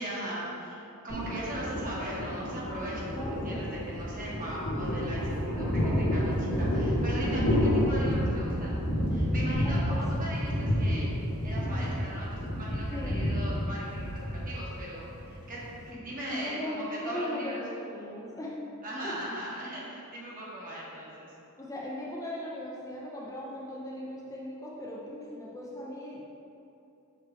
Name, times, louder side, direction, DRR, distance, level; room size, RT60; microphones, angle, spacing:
voice 1, 0.0-8.8 9.1-11.1 11.4-17.6 18.8-21.3, right 1 dB, 40° right, -6 dB, 1.4 m, -39 dB
Thunder, 1.1-15.9, equal, 85° left, 1.2 m, -30 dB
voice 2, 3.1-3.6 6.5-6.8 7.3-7.6 9.6-10.0 11.7-11.9 12.9-13.1 15.9-18.6 19.0-19.2 21.6-26.2, left 1 dB, 15° left, -4 dB, 0.6 m, -39 dB
6.7 x 4.6 x 3.3 m, 2.8 s
head